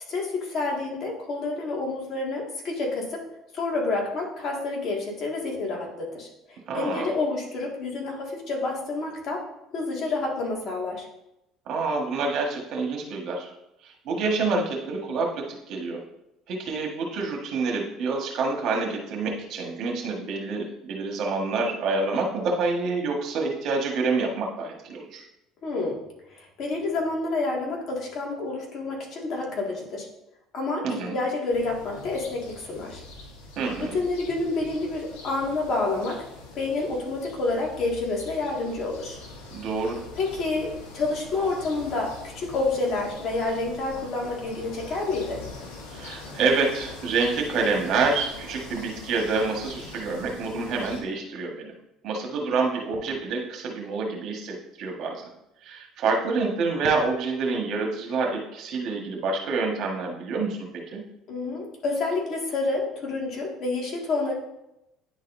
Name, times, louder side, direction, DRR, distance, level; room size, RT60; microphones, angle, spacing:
voice 1, 0.1-3.2 3.5-9.4 9.7-11.1 25.6-26.0 26.4-30.1 30.5-33.0 33.8-36.2 36.5-39.2 40.1-45.4 61.3-64.3, left 3 dB, 50° left, -1 dB, 2.0 m, -29 dB
voice 2, 6.7-7.1 11.7-13.5 13.8-16.0 16.5-25.2 30.8-31.2 33.6-33.9 39.5-40.0 45.9-51.7 52.0-55.2 55.6-61.0, right 4 dB, 60° right, 0 dB, 1.5 m, -27 dB
sound 1, 31.5-51.0, left 3 dB, 85° left, 1.3 m, -43 dB
10.0 x 4.1 x 2.7 m, 0.86 s
supercardioid pair, 95°, 0 cm